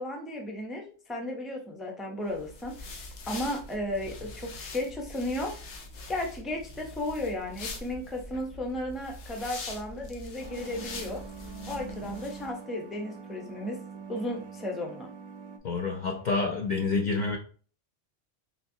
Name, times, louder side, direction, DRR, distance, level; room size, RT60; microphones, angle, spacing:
voice 1, 0.0-2.9 3.3-5.5 6.1-11.2 11.7-13.8 14.1-15.1, left 1 dB, ahead, 0.4 m, -34 dB
sound 1, 2.3-12.5, left 2 dB, 85° left, 0.9 m, -43 dB
sound 2, 10.4-15.6, right 4 dB, 60° right, 0.5 m, -44 dB
voice 2, 15.6-17.4, left 4 dB, 55° left, 0.5 m, -28 dB
3.9 x 2.9 x 2.7 m
omnidirectional pair, 1.1 m